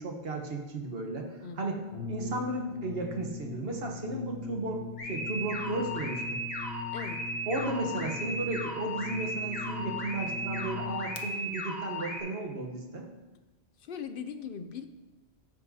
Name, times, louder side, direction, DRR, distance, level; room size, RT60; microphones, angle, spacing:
voice 1, 0.0-1.8 2.1-6.4 7.5-13.1, right 2 dB, 60° right, 1 dB, 1.3 m, -34 dB
voice 2, 1.4-1.9 6.9-7.2 13.8-14.9, left 7 dB, 60° left, 9 dB, 0.7 m, -40 dB
Brass instrument, 1.9-11.2, left 4 dB, 90° left, 1.1 m, -41 dB
sound 1, 5.0-12.2, equal, 40° left, 1.6 m, -36 dB
14.5 x 5.3 x 2.7 m, 1.1 s
omnidirectional pair, 1.2 m